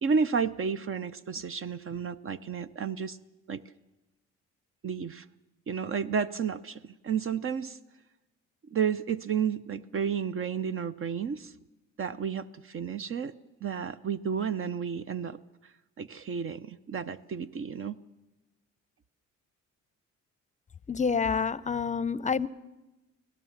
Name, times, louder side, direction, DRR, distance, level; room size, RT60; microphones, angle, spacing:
voice 1, 0.0-3.2 3.5-3.6 4.8-5.3 5.7-7.8 8.7-11.5 12.0-13.3 13.6-15.4 16.0-18.0, right 6 dB, 45° right, 13 dB, 0.7 m, -31 dB
voice 2, 20.9-22.5, left 5 dB, 25° left, 19 dB, 0.7 m, -28 dB
24.5 x 17.0 x 7.3 m, 1.0 s
cardioid pair, 90°, 30 cm